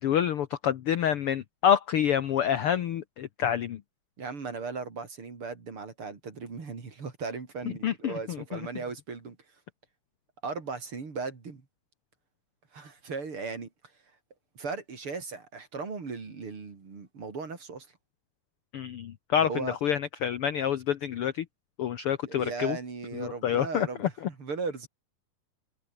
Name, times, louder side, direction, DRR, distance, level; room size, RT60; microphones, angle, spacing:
voice 1, 0.0-3.8 7.8-8.6 18.7-21.4 21.8-22.8 23.1-24.1, left 9 dB, 75° left, 1.3 m, -27 dB
voice 2, 4.2-9.4 10.4-11.6 12.7-13.7 14.6-17.9 19.4-19.8 22.3-24.9, right 4 dB, 40° right, 4.1 m, -37 dB
omnidirectional pair, 3.9 m